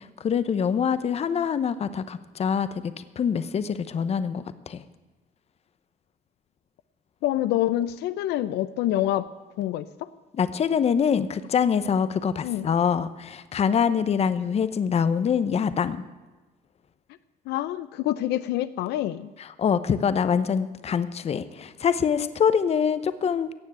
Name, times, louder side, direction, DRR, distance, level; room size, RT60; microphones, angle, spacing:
voice 1, 0.0-4.8 10.3-16.0 19.4-23.5, left 7 dB, 40° left, 13 dB, 0.8 m, -25 dB
voice 2, 7.2-9.3 9.6-10.1 12.4-12.7 17.5-19.3, left 13 dB, 80° left, 13 dB, 0.6 m, -26 dB
16.0 x 7.3 x 8.9 m, 1.2 s
cardioid pair, 110°, 17 cm